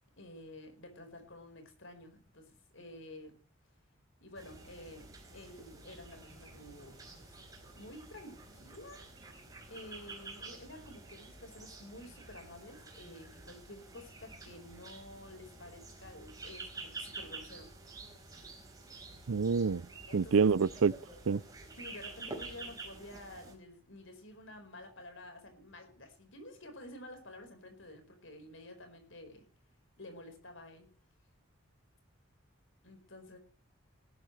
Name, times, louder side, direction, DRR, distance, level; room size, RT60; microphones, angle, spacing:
voice 1, 0.0-3.4 4.2-7.3 7.7-9.0 9.7-18.1 20.1-20.5 21.8-29.5 30.0-30.9 32.8-33.4, left 1 dB, 65° left, 4.6 m, -51 dB
sound 1, 4.3-23.5, right 3 dB, 15° right, 4.4 m, -49 dB
voice 2, 19.3-19.8 20.1-20.9 21.3-21.4, right 5 dB, 80° right, 0.5 m, -27 dB
18.0 x 12.0 x 3.2 m
head